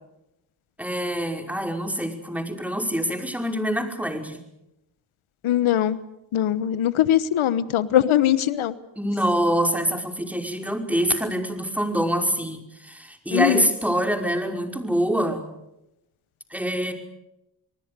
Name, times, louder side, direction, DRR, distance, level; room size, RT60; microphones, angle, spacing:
voice 1, 0.8-4.4 9.0-15.4 16.5-16.9, equal, 5° right, 5 dB, 5.4 m, -25 dB
voice 2, 5.4-6.0 6.3-8.7 13.3-13.7, left 11 dB, 80° left, 16 dB, 1.1 m, -21 dB
29.0 x 19.5 x 6.8 m, 0.87 s
supercardioid pair, 45°, 48 cm